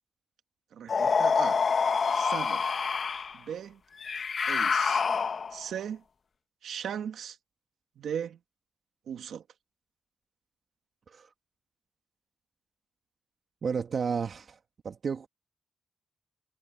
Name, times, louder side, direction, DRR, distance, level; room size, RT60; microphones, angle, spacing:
voice 1, 0.8-1.6 2.1-2.6 3.5-3.8 4.5-5.0 5.5-6.0 6.6-7.4 8.0-8.4 9.1-9.4, right 8 dB, 80° right, 1.6 m, -37 dB
sound 1, 0.9-3.4 4.0-5.7, left 5 dB, 55° left, 0.9 m, -27 dB
voice 2, 13.6-14.6 14.8-15.3, right 6 dB, 55° right, 1.6 m, -32 dB
cardioid pair, 75°, 0 cm